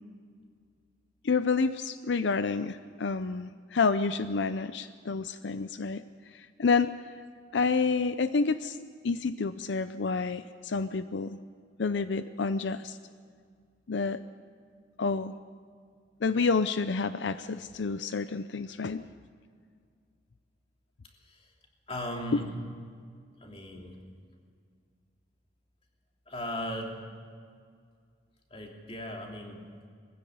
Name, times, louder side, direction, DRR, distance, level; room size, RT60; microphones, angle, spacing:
voice 1, 1.2-6.0 6.3-6.9 7.5-8.8 9.0-11.4 11.8-13.0 13.9-14.2 15.0-15.3 16.2-19.0, left 4 dB, 80° left, 12 dB, 0.5 m, -29 dB
voice 2, 21.9-22.6 23.4-24.0 26.3-26.9 28.5-29.6, equal, 30° left, 0 dB, 3.0 m, -37 dB
20.0 x 15.5 x 9.3 m, 2.1 s
head